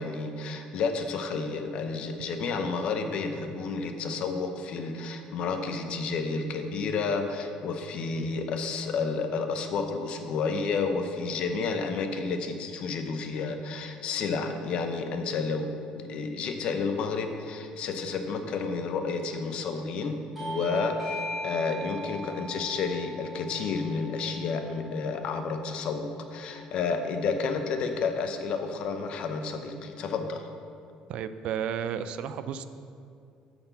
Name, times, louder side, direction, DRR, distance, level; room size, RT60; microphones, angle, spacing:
voice 1, 0.0-30.5, left 4 dB, 50° left, 6 dB, 0.7 m, -31 dB
Bell / Doorbell, 20.4-25.4, equal, 10° right, 2.3 m, -39 dB
voice 2, 31.1-32.6, right 8 dB, 55° right, 11 dB, 0.4 m, -32 dB
9.6 x 4.4 x 6.8 m, 2.4 s
cardioid pair, 155°, 2 cm